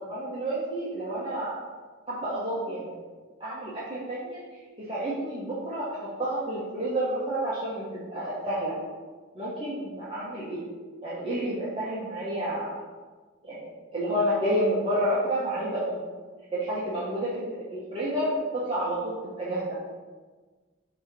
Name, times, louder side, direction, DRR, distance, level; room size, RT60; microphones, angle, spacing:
voice 1, 0.1-1.6 2.1-3.0 3.4-4.4 4.9-8.8 9.3-10.6 11.0-12.7 13.4-16.0 16.5-17.4 17.7-19.8, right 1 dB, 30° right, -10 dB, 1.4 m, -30 dB
9.1 x 3.1 x 4.5 m, 1.4 s
head